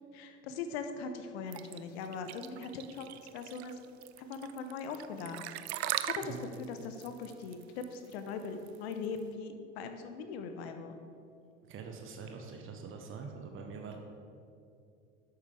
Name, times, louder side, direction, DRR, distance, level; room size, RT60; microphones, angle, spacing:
voice 1, 0.1-3.1 3.3-3.8 4.2-6.4 6.7-10.9, left 5 dB, 60° left, 7 dB, 0.9 m, -40 dB
sound 1, 1.5-9.2, right 14 dB, 60° right, 0.5 m, -40 dB
voice 2, 11.6-14.0, right 5 dB, 35° right, 3 dB, 1.1 m, -44 dB
11.5 x 8.4 x 3.4 m, 2.4 s
figure-of-eight pair, 65°, 36 cm